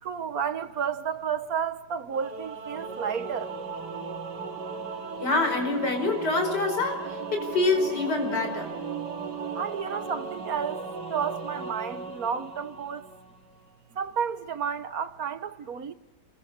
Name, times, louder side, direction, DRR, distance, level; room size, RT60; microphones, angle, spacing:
voice 1, 0.0-3.5 9.5-10.8 11.1-13.1 13.9-15.9, right 7 dB, 60° right, 1.5 m, -31 dB
Singing / Musical instrument, 2.1-13.4, right 4 dB, 85° right, 2.6 m, -37 dB
voice 2, 5.2-8.7, left 3 dB, 80° left, 5.6 m, -26 dB
29.0 x 22.5 x 6.9 m
omnidirectional pair, 1.8 m